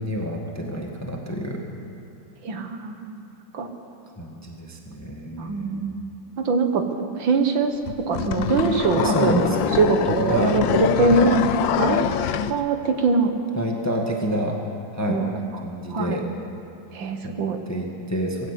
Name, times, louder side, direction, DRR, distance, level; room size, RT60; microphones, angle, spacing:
voice 1, 0.0-1.7 4.2-5.8 9.0-9.7 10.3-10.6 13.5-14.6 14.9-15.2 15.6-16.3 17.2-17.3 17.7-18.5, equal, 10° left, 0 dB, 1.7 m, -28 dB
voice 2, 2.4-3.1 3.5-3.7 5.4-5.9 6.4-11.4 11.8-12.1 12.5-13.3 15.1-15.3 15.9-16.2 16.9-17.6, right 4 dB, 70° right, 6 dB, 2.2 m, -22 dB
sound 1, 7.9-12.6, left 9 dB, 75° left, 1.4 m, -24 dB
20.5 x 15.5 x 8.4 m, 2.8 s
omnidirectional pair, 2.2 m